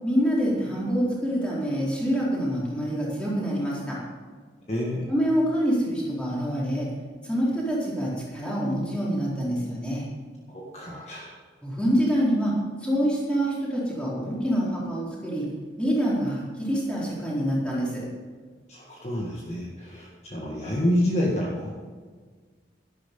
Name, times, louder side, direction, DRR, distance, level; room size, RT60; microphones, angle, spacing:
voice 1, 0.0-4.0 5.1-6.9 7.2-10.0 11.6-12.5 12.8-15.5 15.8-18.0, equal, 5° left, -7 dB, 4.2 m, -26 dB
voice 2, 4.7-5.1 10.5-11.3 18.7-21.7, left 1 dB, 40° left, -3 dB, 1.8 m, -28 dB
12.5 x 11.5 x 5.5 m, 1.5 s
head